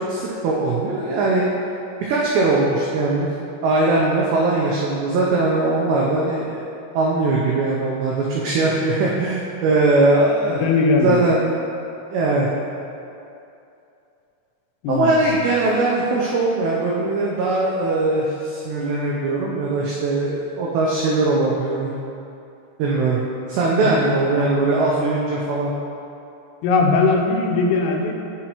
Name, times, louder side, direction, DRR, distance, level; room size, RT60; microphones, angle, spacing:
voice 1, 0.0-1.5 2.0-3.3 3.6-6.6 6.9-10.7 11.0-11.4 12.1-12.5 14.9-21.9 22.8-23.2 23.5-25.7, right 2 dB, 85° right, -4 dB, 2.4 m, -20 dB
voice 2, 10.5-11.3 14.8-15.3 23.8-24.0 26.6-28.1, left 4 dB, 90° left, 1 dB, 3.4 m, -19 dB
11.0 x 5.1 x 2.9 m, 2.7 s
omnidirectional pair, 5.8 m